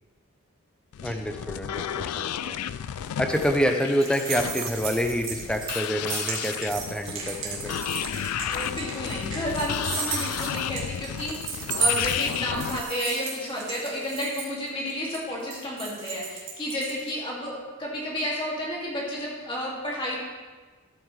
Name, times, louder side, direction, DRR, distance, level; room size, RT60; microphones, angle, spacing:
sound 1, 0.9-12.8, left 9 dB, 85° left, 0.3 m, -33 dB
voice 1, 1.0-1.8 2.2-2.5 3.2-7.7, equal, 5° left, 5 dB, 0.6 m, -27 dB
sound 2, 2.8-17.1, right 4 dB, 60° right, 2.1 m, -34 dB
voice 2, 8.4-20.2, equal, 25° left, -4 dB, 2.3 m, -31 dB
13.0 x 8.5 x 3.2 m, 1.4 s
head